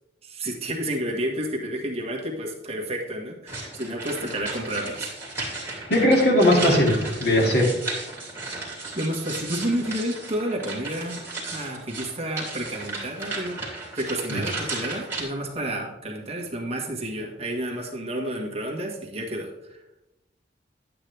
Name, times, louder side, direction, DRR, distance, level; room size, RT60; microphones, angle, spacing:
voice 1, 0.2-5.1 8.9-11.2 11.5-13.6 13.9-19.8, right 1 dB, 35° right, 0 dB, 1.6 m, -30 dB
sound 1, 3.5-15.2, right 3 dB, 15° right, 2.6 m, -34 dB
voice 2, 5.9-6.9 7.2-7.7 14.3-14.4, left 1 dB, 60° left, -1 dB, 2.4 m, -18 dB
11.0 x 8.7 x 3.4 m, 0.94 s
head